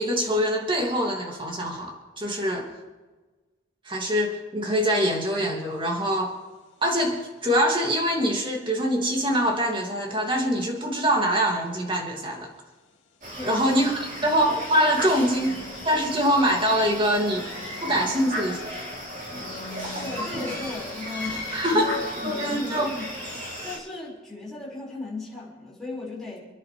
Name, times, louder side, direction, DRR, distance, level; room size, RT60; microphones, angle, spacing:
voice 1, 0.0-2.7 3.8-6.4 6.8-12.5 13.4-13.9 14.2-15.5 15.8-17.4 17.8-18.6 21.5-22.9, equal, 25° right, 0 dB, 2.7 m, -24 dB
sound 1, 5.7-6.0 15.3-16.8 17.2-18.8 19.3-20.9 21.2-21.3 21.7-22.6, left 3 dB, 70° left, 2.4 m, -41 dB
sound 2, 13.2-23.8, equal, 40° right, 4.6 m, -35 dB
voice 2, 13.4-13.7 19.9-26.4, left 3 dB, ahead, -5 dB, 5.7 m, -36 dB
29.5 x 10.5 x 3.5 m, 1.3 s
head